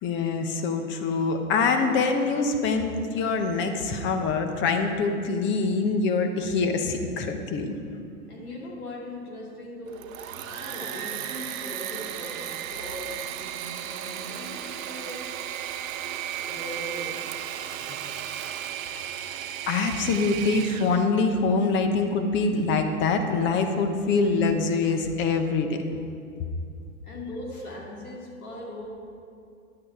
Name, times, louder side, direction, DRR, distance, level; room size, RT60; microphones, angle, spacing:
voice 1, 0.0-7.8 17.9-18.1 19.7-25.8, left 4 dB, 25° left, 6 dB, 0.8 m, -25 dB
voice 2, 8.3-15.4 16.4-17.3 27.0-28.9, left 1 dB, 85° left, -2 dB, 2.7 m, -39 dB
Engine / Mechanisms, 9.9-21.1, right 10 dB, 65° right, 0.7 m, -35 dB
9.6 x 8.6 x 4.7 m, 2.5 s
hypercardioid pair, 125°, 43 cm